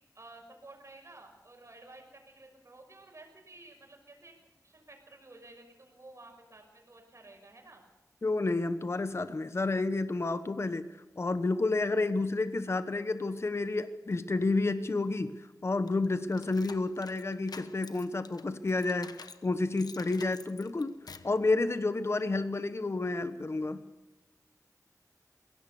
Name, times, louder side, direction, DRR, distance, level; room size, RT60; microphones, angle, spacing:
voice 1, 0.1-7.8, right 2 dB, 45° right, 3 dB, 5.9 m, -53 dB
voice 2, 8.2-10.9 11.2-19.1 19.4-20.9 21.2-23.8, left 3 dB, 40° left, 11 dB, 1.1 m, -30 dB
sound 1, 15.9-19.5 19.8-21.4, left 4 dB, 80° left, 1.1 m, -49 dB
22.5 x 17.0 x 7.0 m, 1.1 s
wide cardioid pair, 100°, 7 cm